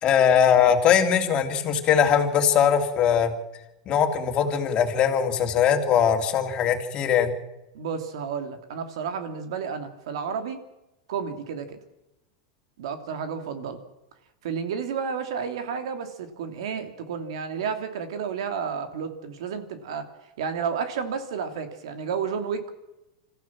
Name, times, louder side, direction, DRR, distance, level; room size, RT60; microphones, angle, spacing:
voice 1, 0.0-3.3 3.9-7.3, left 8 dB, 30° left, 4 dB, 2.9 m, -21 dB
voice 2, 7.7-10.6 11.1-11.8 12.8-13.8 14.4-20.1 20.4-22.7, right 6 dB, 80° right, 8 dB, 3.0 m, -31 dB
26.0 x 14.5 x 7.5 m, 0.94 s
supercardioid pair, 140°, 3 cm